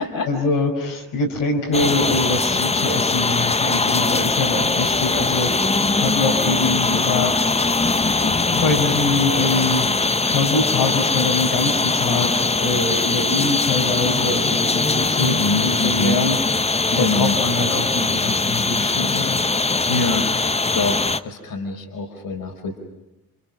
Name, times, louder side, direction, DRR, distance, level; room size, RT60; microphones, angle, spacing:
voice 1, 0.3-5.5 6.0-7.5 8.2-9.9 10.3-15.3 15.6-16.4 16.9-19.4, left 3 dB, 70° left, 0 dB, 5.5 m, -24 dB
sound 1, 1.7-21.2, left 3 dB, 15° left, 1.0 m, -21 dB
voice 2, 15.2-16.2 16.9-17.4 19.9-22.8, left 3 dB, 50° left, 4 dB, 4.9 m, -25 dB
29.5 x 28.0 x 6.2 m, 0.96 s
hypercardioid pair, 50°, 44 cm